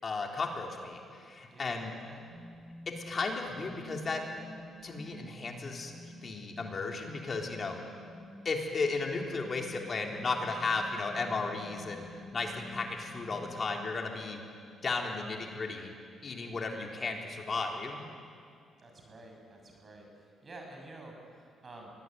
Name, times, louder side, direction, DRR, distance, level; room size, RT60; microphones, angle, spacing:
voice 1, 0.0-1.9 3.1-4.2 4.8-7.8 8.4-14.4 14.8-15.9 16.2-18.0, left 3 dB, 40° left, 1 dB, 3.7 m, -35 dB
voice 2, 1.5-2.3 18.8-21.9, right 2 dB, 40° right, 1 dB, 6.6 m, -50 dB
sound 1, 2.3-14.3, equal, 65° right, 6.2 m, -50 dB
23.0 x 18.0 x 9.4 m, 2.3 s
cardioid pair, 90°, 0 cm